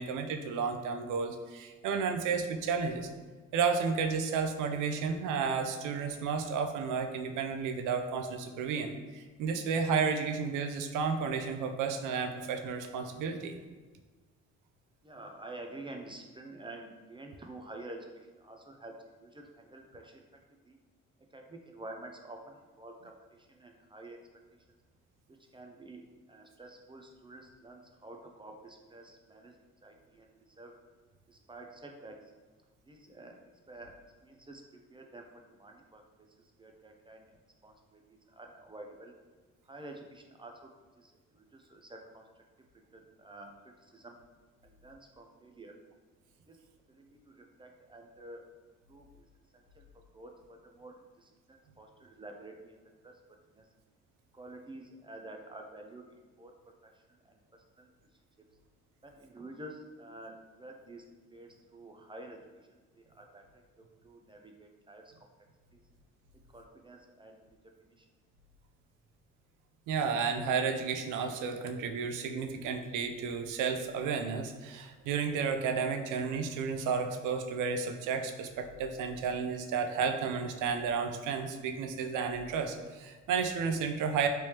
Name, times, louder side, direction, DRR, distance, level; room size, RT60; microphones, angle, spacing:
voice 1, 0.0-3.1 3.5-13.6 69.9-84.3, right 5 dB, 85° right, 6 dB, 0.5 m, -32 dB
voice 2, 15.0-20.2 20.6-20.8 21.3-24.2 25.3-29.6 29.8-30.7 31.3-32.3 32.9-34.6 34.9-37.3 37.6-39.1 39.7-40.7 41.0-42.4 42.9-44.2 44.6-45.8 46.5-48.4 48.9-49.1 49.5-52.8 53.0-53.2 53.5-53.7 54.3-56.6 56.8-57.4 57.8-57.9 59.0-62.4 63.0-65.1 65.7-65.8 66.5-68.1, right 2 dB, 15° right, 2 dB, 0.3 m, -49 dB
3.2 x 3.1 x 2.8 m, 1.3 s
cardioid pair, 90°, 30 cm